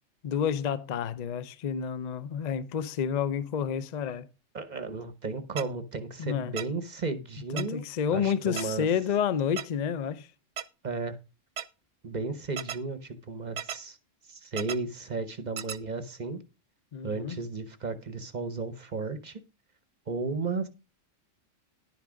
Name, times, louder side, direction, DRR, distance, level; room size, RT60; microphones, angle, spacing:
voice 1, 0.2-4.3 6.2-6.5 7.5-10.3 16.9-17.4, left 8 dB, 45° left, 0.6 m, -29 dB
voice 2, 4.5-7.8 8.1-8.9 10.8-11.2 12.0-14.0 14.3-16.4 17.0-19.4 20.1-20.7, right 3 dB, 40° right, 0.9 m, -34 dB
sound 1, 5.6-5.7 6.6-6.7 7.6-7.7 8.6-8.7 9.6-9.7 10.6-10.7 11.6-11.7 12.6-12.8 13.6-13.8 14.6-14.8 15.6-15.8, right 9 dB, 70° right, 0.9 m, -34 dB
11.0 x 6.0 x 5.1 m
omnidirectional pair, 1.3 m